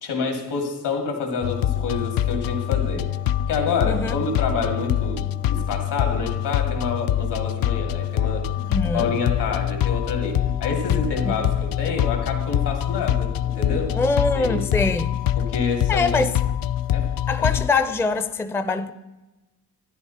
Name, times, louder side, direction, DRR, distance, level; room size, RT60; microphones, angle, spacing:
voice 1, 0.0-3.0 3.5-8.5 8.9-13.9 14.3-14.6 15.4-16.2 16.8-17.1 17.4-17.5, left 4 dB, 85° left, 2.6 m, -28 dB
sound 1, 1.4-17.7, left 11 dB, 60° left, 0.5 m, -24 dB
voice 2, 3.9-4.2 8.7-9.1 11.2-11.5 13.9-15.2 15.9-16.3 17.3-18.9, left 3 dB, 5° left, 0.4 m, -23 dB
12.5 x 10.5 x 4.2 m
cardioid pair, 115°, 40 cm